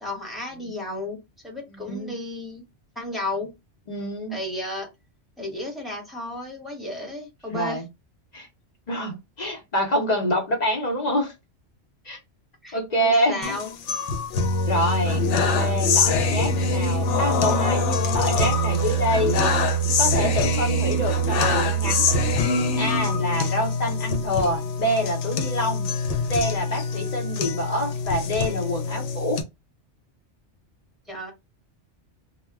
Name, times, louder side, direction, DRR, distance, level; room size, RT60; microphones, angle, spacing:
voice 1, 0.0-2.6 2.9-3.5 4.3-4.9 5.4-7.8 12.6-13.7 31.1-31.3, left 1 dB, ahead, 0.9 m, -33 dB
voice 2, 1.7-2.1 3.9-4.4 7.5-7.9 8.3-8.5 8.9-11.3 12.0-12.2 12.7-13.6 14.6-19.7 20.0-22.1 22.7-25.9 26.3-29.4, equal, 40° left, 0.8 m, -26 dB
sound 1, 13.4-29.4, left 1 dB, 85° left, 0.9 m, -24 dB
2.2 x 2.1 x 3.4 m
omnidirectional pair, 1.2 m